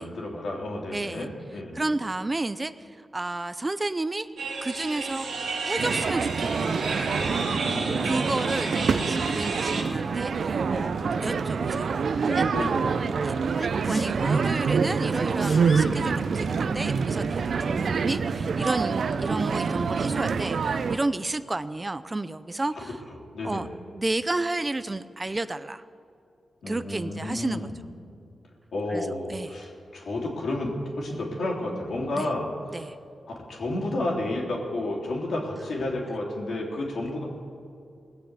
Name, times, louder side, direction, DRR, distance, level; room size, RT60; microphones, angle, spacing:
voice 1, 0.0-1.8 7.6-8.1 10.9-11.9 12.5-13.2 23.3-23.6 26.6-27.8 28.7-32.8 33.3-37.3, left 1 dB, 75° left, -1 dB, 3.2 m, -32 dB
voice 2, 0.9-1.3 1.7-4.3 4.6-6.9 8.0-11.9 12.4-12.5 13.2-13.4 13.8-23.0 23.4-23.7 23.9-25.8 26.7-27.7 28.9-29.6 32.2-32.3 32.7-33.0, right 2 dB, 25° right, 13 dB, 0.5 m, -31 dB
sound 1, 4.4-9.8, right 3 dB, 90° right, 2.4 m, -31 dB
sound 2, 5.8-21.0, right 5 dB, 70° right, 0.6 m, -26 dB
Sneeze, 12.2-12.6 13.6-14.5 15.1-16.0 17.3-17.4, left 3 dB, 45° left, 0.9 m, -40 dB
19.0 x 6.9 x 8.2 m, 2.5 s
cardioid pair, 75°, 0 cm